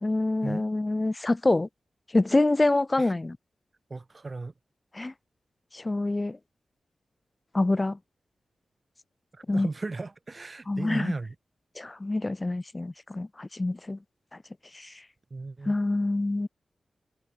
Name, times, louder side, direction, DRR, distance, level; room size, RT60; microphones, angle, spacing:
voice 1, 0.0-1.7 2.1-3.4 4.9-5.1 5.7-6.4 7.5-8.0 9.5-9.7 10.7-11.1 11.8-14.0 14.7-14.9 15.7-16.5, left 2 dB, 20° left, 1.5 m, -26 dB
voice 2, 3.9-4.5 9.3-11.4 15.3-15.8, right 3 dB, 35° right, 2.2 m, -36 dB
wide cardioid pair, 115°, 0 cm